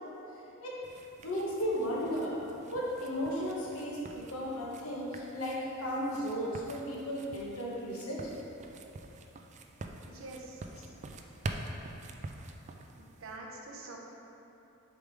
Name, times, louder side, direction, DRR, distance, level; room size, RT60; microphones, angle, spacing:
sound 1, 0.8-13.4, right 2 dB, 35° right, 0.4 m, -46 dB
voice 1, 1.2-2.4 2.7-4.0 4.3-8.2, equal, 70° left, -5 dB, 1.3 m, -34 dB
voice 2, 10.1-10.6 13.2-14.0, right 2 dB, 65° right, -1 dB, 0.8 m, -45 dB
6.9 x 3.6 x 4.8 m, 2.9 s
head